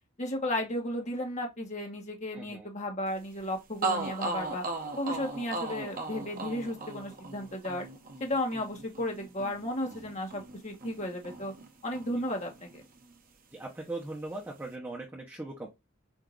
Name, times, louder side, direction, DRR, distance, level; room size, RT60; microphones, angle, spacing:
voice 1, 0.2-4.6 5.0-7.9 8.2-11.5 11.8-12.8, left 1 dB, 35° left, 1.4 m, -34 dB
voice 2, 2.3-2.7 12.1-12.2 13.5-15.7, right 2 dB, 10° right, 1.0 m, -39 dB
sound 1, 3.4-3.5 3.8-11.7 11.9-13.1, right 3 dB, 40° right, 0.8 m, -37 dB
4.6 x 2.8 x 3.8 m
head